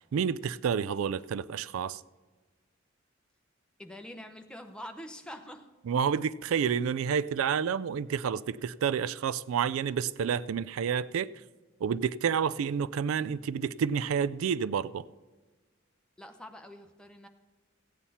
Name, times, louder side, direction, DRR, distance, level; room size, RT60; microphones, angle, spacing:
voice 1, 0.1-2.0 5.9-11.3 11.8-15.0, right 7 dB, 85° right, 0.4 m, -29 dB
voice 2, 3.8-5.7 16.2-17.3, equal, 5° left, 0.8 m, -45 dB
15.0 x 9.0 x 4.2 m
head